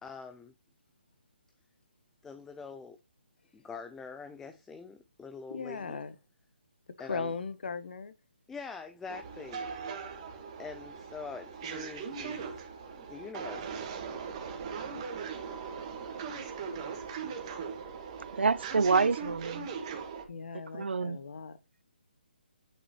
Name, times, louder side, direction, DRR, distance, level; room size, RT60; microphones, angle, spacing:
voice 1, 0.0-0.5 2.2-3.0 3.5-6.0 7.0-7.3 8.5-9.7 10.6-12.4 13.0-13.9, left 5 dB, 5° left, 0.3 m, -44 dB
voice 2, 5.5-6.2 7.0-8.1 20.3-21.6, left 4 dB, 60° left, 0.8 m, -38 dB
sound 1, 9.1-20.3, right 6 dB, 30° right, 1.5 m, -40 dB
voice 3, 18.3-19.7 20.7-21.2, right 4 dB, 80° right, 0.5 m, -27 dB
8.9 x 5.4 x 3.1 m
hypercardioid pair, 155°, 6 cm